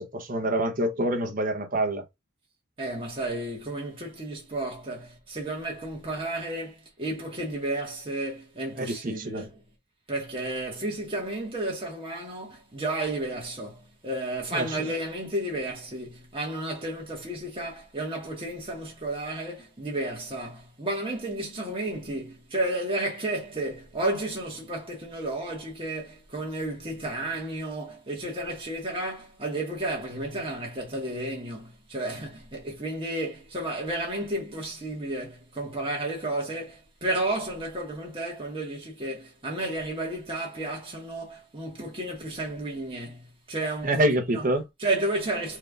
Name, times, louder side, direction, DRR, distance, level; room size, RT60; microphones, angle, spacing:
voice 1, 0.0-2.0 8.8-9.5 14.5-14.8 43.8-44.7, right 1 dB, 40° right, 0.8 m, -26 dB
voice 2, 2.8-9.5 10.1-44.1 44.3-44.5 44.8-45.6, right 1 dB, 25° right, 1.7 m, -32 dB
4.5 x 3.2 x 2.4 m
head